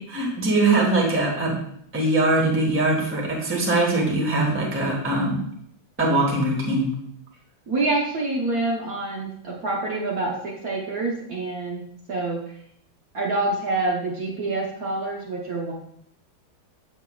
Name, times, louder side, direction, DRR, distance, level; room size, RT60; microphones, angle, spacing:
voice 1, 0.1-1.5 1.9-5.4 6.0-6.9, right 2 dB, 5° right, -3 dB, 1.2 m, -22 dB
voice 2, 7.7-12.5 13.1-15.7, right 2 dB, 55° right, -3 dB, 1.4 m, -27 dB
7.2 x 7.2 x 2.3 m, 0.68 s
omnidirectional pair, 2.1 m